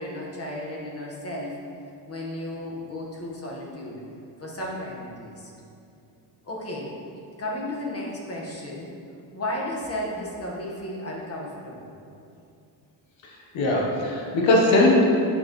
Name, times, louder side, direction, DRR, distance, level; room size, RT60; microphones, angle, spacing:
voice 1, 0.0-1.5 2.1-4.0 4.4-5.5 6.4-6.9 7.4-8.9 9.3-11.9, left 1 dB, 30° left, -3 dB, 1.7 m, -33 dB
voice 2, 13.2-15.0, left 1 dB, 85° left, -2 dB, 1.4 m, -20 dB
8.7 x 7.0 x 3.2 m, 2.5 s
cardioid pair, 115°, 45 cm